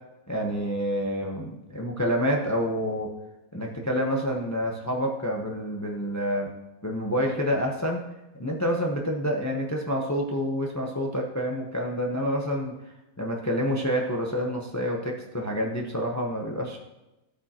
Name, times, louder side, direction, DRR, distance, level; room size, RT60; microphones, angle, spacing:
voice 1, 0.3-3.1 3.5-6.5 6.8-8.0 8.4-12.7 13.2-16.8, equal, 15° left, 0 dB, 0.9 m, -28 dB
14.5 x 8.1 x 3.0 m, 0.97 s
omnidirectional pair, 1.6 m